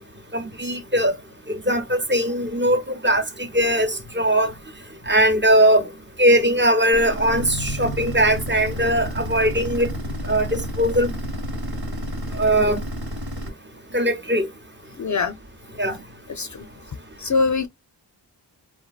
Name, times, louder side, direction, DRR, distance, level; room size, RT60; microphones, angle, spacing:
voice 1, 0.3-1.1 1.5-4.5 5.1-5.9 6.2-9.9 10.3-11.1 12.3-12.8 13.9-14.5 15.8-16.0, right 1 dB, 25° right, 0.9 m, -20 dB
sound 1, 6.9-13.5, equal, 60° right, 1.0 m, -30 dB
voice 2, 15.0-15.3 16.3-16.7 17.2-17.7, left 4 dB, 45° left, 0.5 m, -23 dB
3.1 x 2.6 x 2.3 m
cardioid pair, 45°, 43 cm